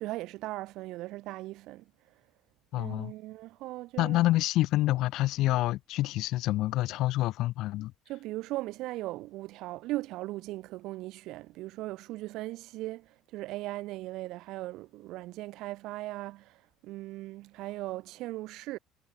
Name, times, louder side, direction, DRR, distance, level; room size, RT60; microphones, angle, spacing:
voice 1, 0.0-1.8 2.8-4.3 8.1-18.8, right 18 dB, 60° right, 2.1 m, -38 dB
voice 2, 2.7-3.1 4.0-7.9, left 16 dB, 55° left, 0.5 m, -27 dB
cardioid pair, 175°, 0 cm